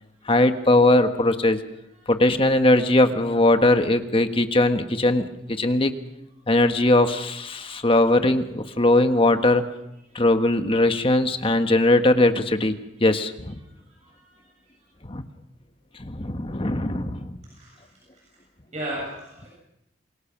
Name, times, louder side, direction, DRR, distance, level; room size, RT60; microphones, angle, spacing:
voice 1, 0.2-1.6 2.1-5.9 6.5-9.6 10.1-13.6 15.0-15.2 16.0-17.4, left 2 dB, 30° left, 7 dB, 1.4 m, -20 dB
voice 2, 13.9-14.4 17.5-17.9 18.1-18.2 18.7-19.5, right 1 dB, 40° right, -3 dB, 7.7 m, -36 dB
27.5 x 22.5 x 6.0 m, 0.86 s
head